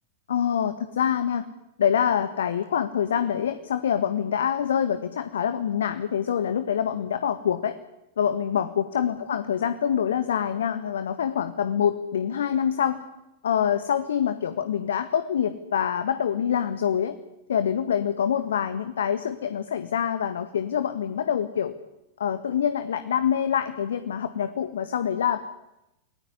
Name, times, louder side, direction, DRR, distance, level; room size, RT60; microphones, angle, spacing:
voice 1, 0.3-1.4 1.8-7.8 8.2-13.0 13.4-17.2 17.5-21.7 22.2-25.4, left 8 dB, 65° left, 11 dB, 1.6 m, -25 dB
30.0 x 20.0 x 9.9 m, 0.91 s
figure-of-eight pair, 90°, 0 cm